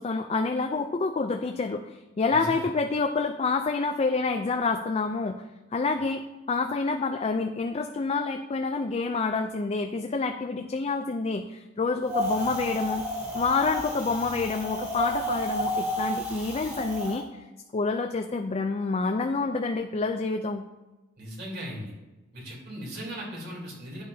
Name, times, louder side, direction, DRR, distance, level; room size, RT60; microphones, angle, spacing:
voice 1, 0.0-5.4 5.7-13.0 13.3-17.4 17.7-20.7, left 4 dB, 30° left, 5 dB, 0.4 m, -28 dB
voice 2, 2.3-2.7 21.2-21.9 22.3-24.0, equal, 55° right, -3 dB, 3.2 m, -38 dB
Wind, 12.1-17.2, equal, 15° right, 2.7 m, -31 dB
10.5 x 8.7 x 2.7 m, 1.1 s
head